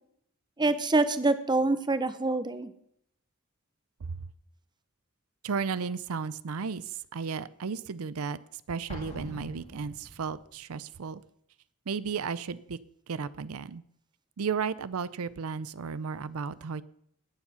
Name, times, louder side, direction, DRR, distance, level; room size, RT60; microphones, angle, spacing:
voice 1, 0.6-2.7, right 2 dB, 20° right, 12 dB, 0.8 m, -26 dB
voice 2, 5.4-8.4 8.7-11.2 11.9-12.8 13.1-13.8 14.4-16.8, right 5 dB, 90° right, 17 dB, 0.5 m, -34 dB
Explosion, 8.9-10.5, equal, 30° left, 2.1 m, -43 dB
19.0 x 7.3 x 5.6 m, 0.71 s
head